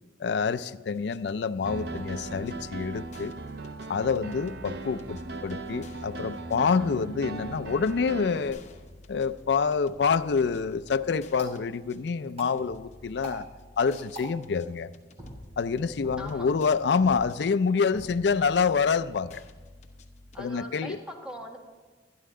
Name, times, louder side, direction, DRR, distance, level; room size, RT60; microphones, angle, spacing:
voice 1, 0.2-3.3 3.9-8.6 9.1-13.5 13.8-14.9 15.6-19.4 20.4-21.0, left 5 dB, 70° left, 13 dB, 0.4 m, -27 dB
sound 1, 0.9-20.5, left 2 dB, 45° left, 0.9 m, -52 dB
Piano, 1.6-8.5, right 3 dB, 65° right, 0.7 m, -38 dB
sound 2, 11.3-20.3, equal, 35° right, 3.8 m, -48 dB
voice 2, 16.2-16.5 20.3-21.6, left 1 dB, 5° right, 1 dB, 1.3 m, -41 dB
12.0 x 11.0 x 3.7 m, 1.4 s
head